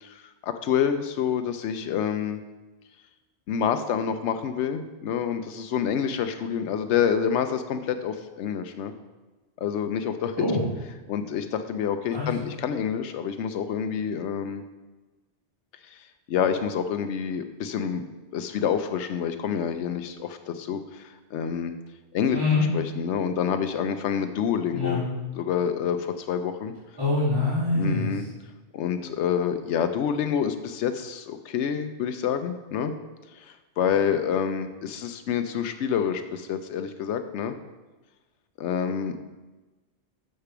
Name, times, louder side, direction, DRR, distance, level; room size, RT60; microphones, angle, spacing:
voice 1, 0.0-2.4 3.5-8.9 9.6-10.4 11.1-14.6 15.9-16.0 16.3-18.0 18.3-21.7 22.1-22.4 22.7-25.0 25.4-26.7 27.7-28.2 28.7-32.9 33.3-37.5 38.6-39.2, left 8 dB, 90° left, 8 dB, 0.9 m, -27 dB
voice 2, 22.3-22.6 24.7-25.0 27.0-28.2, left 3 dB, 20° right, -11 dB, 3.0 m, -24 dB
6.7 x 6.6 x 6.0 m, 1.2 s
omnidirectional pair, 1.1 m